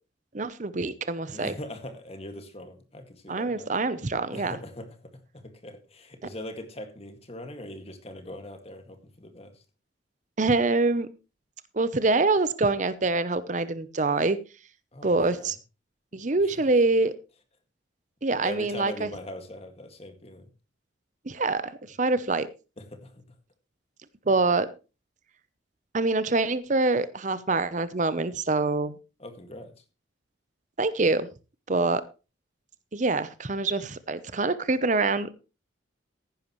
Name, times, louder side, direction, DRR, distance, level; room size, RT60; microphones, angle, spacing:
voice 1, 0.3-1.5 3.3-4.6 10.4-11.1 11.7-14.4 15.0-15.6 16.1-17.1 18.2-19.1 21.3-22.5 24.3-24.7 25.9-28.9 30.8-31.3 31.7-32.0 32.9-35.3, right 3 dB, 40° right, 0.7 m, -25 dB
voice 2, 1.3-3.8 4.3-9.6 14.9-15.5 18.4-20.5 22.8-23.2 29.2-29.8, left 1 dB, 30° left, 2.0 m, -41 dB
15.0 x 10.5 x 3.1 m
head